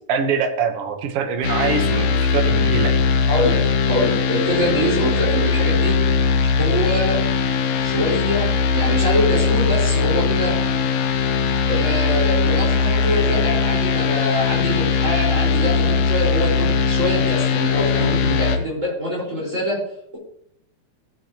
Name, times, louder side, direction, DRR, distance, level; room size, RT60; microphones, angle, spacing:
voice 1, 0.1-3.0, right 6 dB, 60° right, 5 dB, 1.9 m, -23 dB
sound 1, 1.4-18.6, left 5 dB, 70° left, 1.7 m, -20 dB
voice 2, 3.8-6.0 6.4-7.2 7.8-10.5 11.7-19.8, equal, 20° right, -6 dB, 5.2 m, -24 dB
16.5 x 8.2 x 3.0 m, 0.71 s
omnidirectional pair, 3.6 m